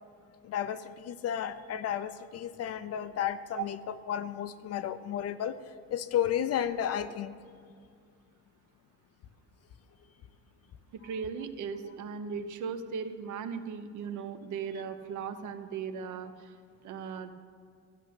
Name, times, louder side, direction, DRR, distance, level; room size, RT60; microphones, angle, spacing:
voice 1, 0.4-3.8 4.1-5.6 5.9-7.3, left 9 dB, 50° left, 13 dB, 0.6 m, -32 dB
voice 2, 10.9-16.5 16.8-17.3, right 6 dB, 70° right, 8 dB, 1.0 m, -37 dB
13.5 x 6.3 x 9.5 m, 2.2 s
cardioid pair, 160°, 31 cm